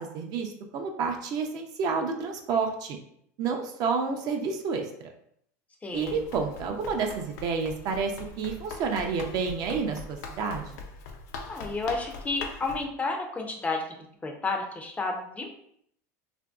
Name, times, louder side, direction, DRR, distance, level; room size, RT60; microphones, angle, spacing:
voice 1, 0.0-3.0 3.4-5.1 5.9-10.7, right 5 dB, 50° right, 4 dB, 0.5 m, -30 dB
voice 2, 5.8-6.2 11.5-15.5, left 3 dB, 15° left, 2 dB, 0.4 m, -31 dB
Run, 5.9-12.8, left 3 dB, 80° left, 0.4 m, -42 dB
2.9 x 2.5 x 2.3 m, 0.69 s
supercardioid pair, 120°, 9 cm